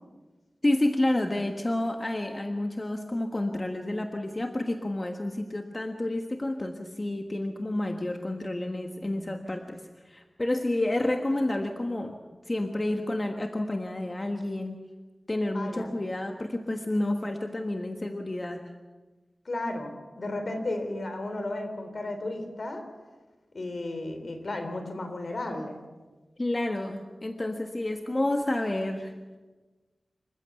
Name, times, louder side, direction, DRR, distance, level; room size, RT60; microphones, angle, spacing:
voice 1, 0.6-12.2 12.5-14.8 15.3-18.7 26.4-29.1, left 1 dB, 30° left, 4 dB, 1.4 m, -30 dB
voice 2, 15.5-15.9 19.5-22.8 23.5-25.8, left 2 dB, 65° left, 6 dB, 3.6 m, -34 dB
27.0 x 15.0 x 7.0 m, 1.3 s
wide cardioid pair, 85°, 0 cm